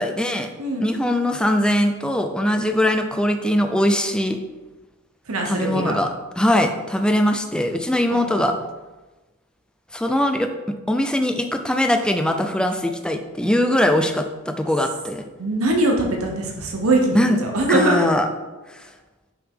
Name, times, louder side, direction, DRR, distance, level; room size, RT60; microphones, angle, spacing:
voice 1, 0.0-0.5 0.8-4.4 5.4-6.1 6.4-8.6 9.9-15.2 17.1-17.4 17.7-18.3 18.7-18.9, left 1 dB, 5° left, 5 dB, 0.4 m, -21 dB
voice 2, 0.6-1.1 5.3-6.0 8.1-8.5 15.4-18.1, right 1 dB, 85° right, 2 dB, 0.9 m, -22 dB
5.8 x 5.6 x 3.6 m, 1.2 s
head